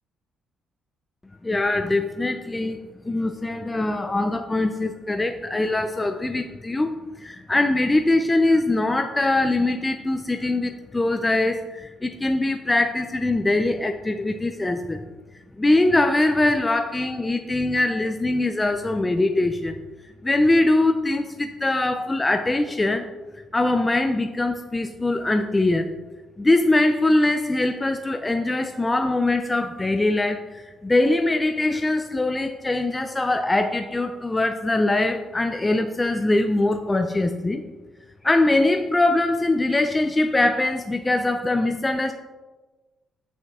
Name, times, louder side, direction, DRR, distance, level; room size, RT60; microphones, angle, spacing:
voice 1, 1.4-2.8 3.0-15.0 15.6-19.7 20.2-23.1 23.5-25.9 26.4-37.6 38.2-42.1, left 2 dB, 10° left, 6 dB, 0.3 m, -22 dB
8.1 x 7.0 x 3.5 m, 1.2 s
cardioid pair, 160°, 0 cm